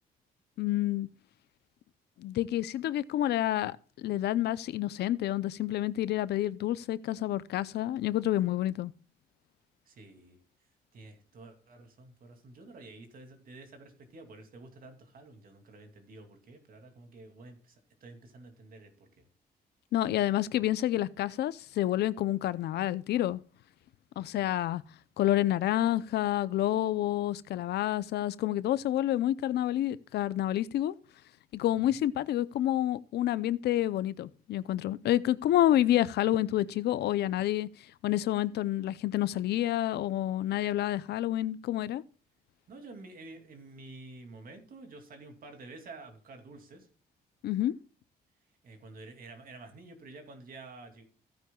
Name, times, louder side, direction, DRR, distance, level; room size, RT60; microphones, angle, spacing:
voice 1, 0.6-1.1 2.2-8.9 19.9-23.4 24.2-24.8 25.2-30.9 31.5-37.7 38.0-42.0 47.4-47.7, left 13 dB, 85° left, 0.6 m, -29 dB
voice 2, 9.9-10.4 10.9-19.2 24.2-24.5 42.7-46.9 48.6-51.0, right 3 dB, 60° right, 2.6 m, -50 dB
16.0 x 9.3 x 2.3 m
cardioid pair, 120°, 17 cm